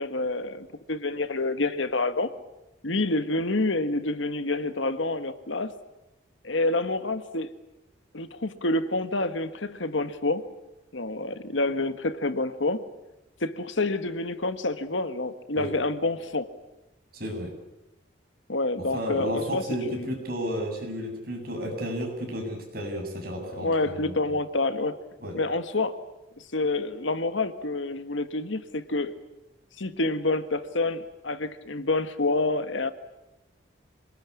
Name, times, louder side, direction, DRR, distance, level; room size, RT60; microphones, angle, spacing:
voice 1, 0.0-2.3 2.8-5.7 6.4-7.5 8.1-10.4 10.9-12.8 13.4-16.5 18.5-20.1 23.4-25.0 25.3-26.0 26.4-29.1 29.8-32.9, left 2 dB, 80° left, 11 dB, 1.6 m, -28 dB
voice 2, 17.1-17.5 18.9-24.2 25.2-25.3, equal, 50° right, 1 dB, 7.7 m, -32 dB
26.5 x 19.5 x 9.8 m, 0.99 s
head